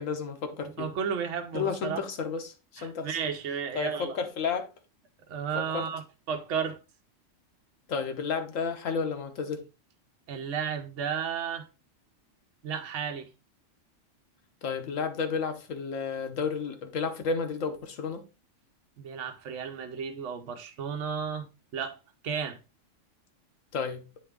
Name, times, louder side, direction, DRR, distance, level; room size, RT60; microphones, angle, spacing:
voice 1, 0.0-0.9 1.5-3.2 3.7-4.7 5.5-5.9 7.9-9.6 14.6-18.2 23.7-24.0, left 5 dB, 85° left, 1.3 m, -32 dB
voice 2, 0.8-2.0 2.8-4.2 5.3-6.8 10.3-11.7 12.6-13.3 19.0-21.5 21.7-22.0 22.2-22.6, right 6 dB, 70° right, 1.0 m, -33 dB
8.7 x 3.4 x 3.6 m
omnidirectional pair, 1.3 m